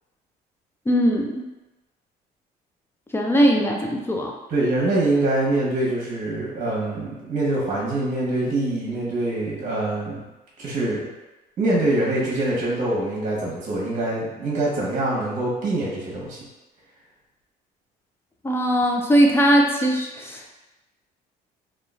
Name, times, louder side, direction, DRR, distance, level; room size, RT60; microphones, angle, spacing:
voice 1, 0.9-1.5 3.1-4.3 18.4-20.5, equal, 15° left, 0 dB, 0.3 m, -20 dB
voice 2, 4.5-10.3 10.6-11.1 11.6-16.4, right 2 dB, 50° right, -4 dB, 1.0 m, -24 dB
2.9 x 2.3 x 2.4 m, 1.1 s
cardioid pair, 110°, 17 cm